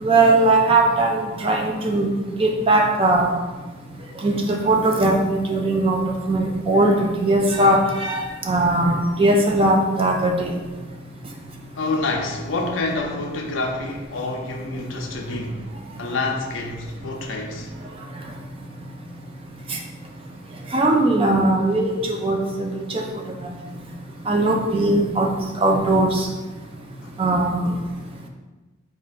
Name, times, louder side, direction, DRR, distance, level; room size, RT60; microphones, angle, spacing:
voice 1, 0.0-2.1 2.4-3.3 4.2-6.0 6.3-10.5 20.7-22.8 23.4-23.5 24.3-25.3 25.6-26.3 27.2-27.7, right 2 dB, 30° right, 0.4 m, -19 dB
voice 2, 11.8-15.7 16.0-17.7, left 2 dB, 75° left, 0.5 m, -27 dB
4.1 x 2.4 x 3.6 m
head